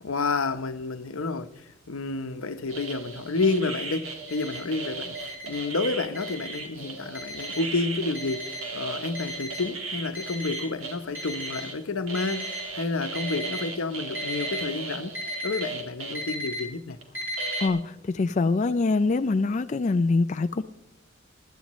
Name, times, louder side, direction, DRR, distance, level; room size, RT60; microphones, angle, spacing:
voice 1, 0.0-15.1 15.4-17.0, left 3 dB, 85° left, 0.9 m, -30 dB
sound 1, 2.7-11.8 12.1-16.3 17.0-17.1 17.4-17.7, right 4 dB, 80° right, 2.4 m, -37 dB
Alarm, 4.3-4.6 5.1-5.6 6.1-6.6 7.1-7.6 8.1-8.6 9.1-9.6 10.1-10.6 11.1-11.6 12.1-12.6 13.1-13.6 14.1-14.6 15.1-15.6 16.1-16.6 17.1-17.6, equal, 10° right, 4.8 m, -35 dB
voice 2, 17.6-20.6, left 3 dB, 35° left, 0.4 m, -24 dB
23.5 x 11.0 x 3.1 m
head